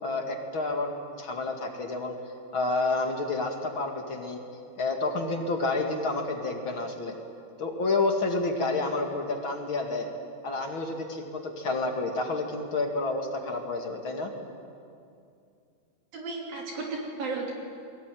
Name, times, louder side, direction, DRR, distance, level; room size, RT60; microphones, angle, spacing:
voice 1, 0.0-2.2 2.5-4.4 4.8-7.2 7.6-10.1 10.4-14.3, left 3 dB, 35° left, 3 dB, 2.5 m, -29 dB
voice 2, 16.1-17.5, right 3 dB, 60° right, -1 dB, 4.9 m, -34 dB
29.0 x 22.0 x 9.4 m, 2.5 s
omnidirectional pair, 4.6 m